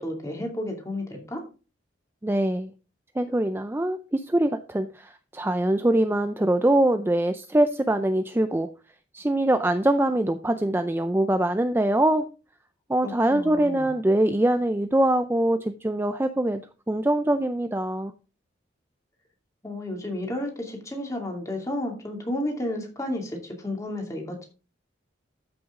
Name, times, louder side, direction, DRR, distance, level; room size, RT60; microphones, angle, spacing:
voice 1, 0.0-1.4 13.0-13.9 19.6-24.5, left 1 dB, 15° left, 2 dB, 2.5 m, -32 dB
voice 2, 2.2-2.7 3.2-8.7 9.1-12.3 12.9-16.6 16.9-18.1, right 1 dB, 10° right, 9 dB, 0.4 m, -23 dB
13.0 x 6.1 x 3.7 m, 0.34 s
head